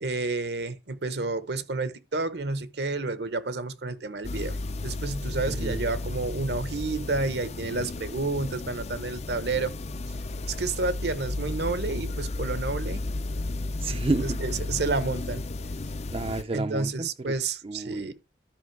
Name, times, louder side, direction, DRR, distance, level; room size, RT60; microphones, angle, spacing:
voice 1, 0.0-4.6 4.8-9.7 10.5-13.0 14.2-15.4 16.5-18.1, right 3 dB, 65° right, 1.0 m, -30 dB
sound 1, 4.2-16.4, left 2 dB, 40° left, 0.5 m, -33 dB
voice 2, 5.5-5.9 13.8-14.4 16.1-17.3 17.6-18.1, right 2 dB, 35° right, 0.5 m, -30 dB
12.0 x 5.4 x 4.7 m
head